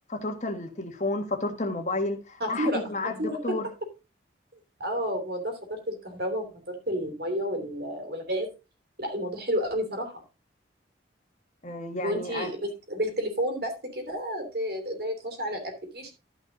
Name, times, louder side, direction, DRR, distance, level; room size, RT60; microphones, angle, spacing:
voice 1, 0.1-3.7 11.6-12.5, left 2 dB, 40° left, 1.6 m, -31 dB
voice 2, 2.4-2.8 3.2-3.6 4.8-8.5 9.0-10.2 12.0-16.1, equal, 55° right, 3.0 m, -31 dB
13.0 x 5.5 x 3.8 m
head